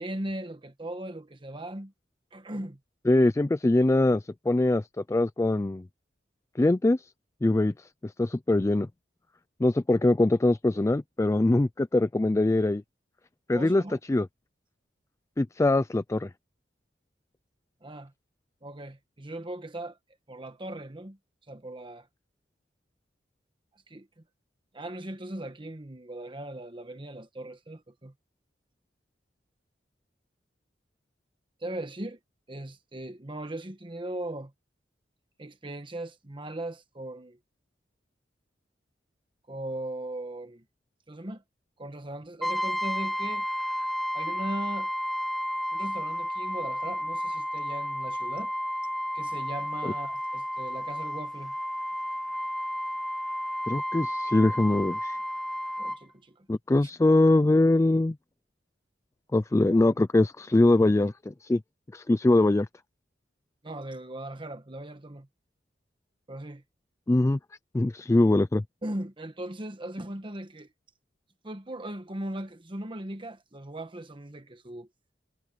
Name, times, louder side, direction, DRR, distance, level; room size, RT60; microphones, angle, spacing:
voice 1, 0.0-1.9 2.3-2.8 13.5-14.0 17.8-18.1 18.6-20.0 20.3-21.2 21.5-22.1 23.9-24.1 24.7-28.1 31.6-32.2 32.5-34.5 35.4-37.4 39.5-40.6 41.1-41.4 41.8-43.5 44.1-44.9 45.7-48.5 49.1-51.5 55.8-56.5 56.8-56.9 59.7-60.0 63.6-65.3 66.3-66.6 68.8-70.7 71.4-74.9, right 1 dB, 30° right, 1.3 m, -38 dB
voice 2, 3.1-4.8 5.1-5.8 6.6-7.0 7.4-7.7 8.0-8.9 9.6-12.8 13.5-13.8 14.1-14.3 15.4-16.3 53.7-55.2 56.5-58.2 59.3-61.6 61.9-62.7 67.1-67.4 67.7-68.6, left 2 dB, 15° left, 0.4 m, -23 dB
Brass instrument, 42.4-56.0, equal, ahead, 1.6 m, -32 dB
head